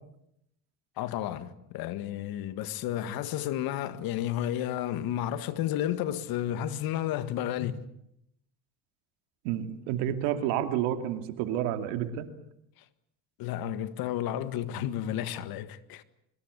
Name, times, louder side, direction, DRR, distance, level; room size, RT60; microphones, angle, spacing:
voice 1, 1.0-7.9 13.4-16.0, left 11 dB, 65° left, 1.8 m, -32 dB
voice 2, 9.4-12.3, right 11 dB, 85° right, 2.7 m, -30 dB
24.5 x 21.5 x 8.3 m
cardioid pair, 110°, 38 cm